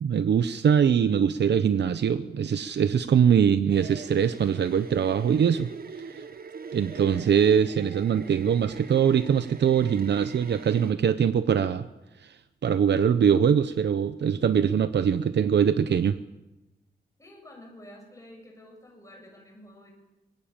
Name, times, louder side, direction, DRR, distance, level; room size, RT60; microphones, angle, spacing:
voice 1, 0.0-5.7 6.7-11.9 12.2-12.4 12.6-16.2, right 8 dB, 90° right, 12 dB, 0.8 m, -22 dB
sound 1, 3.7-10.9, right 5 dB, 60° right, 1.6 m, -43 dB
voice 2, 17.2-19.9, left 1 dB, 20° left, 1 dB, 7.5 m, -49 dB
24.0 x 21.5 x 8.9 m, 1.0 s
wide cardioid pair, 95°, 17 cm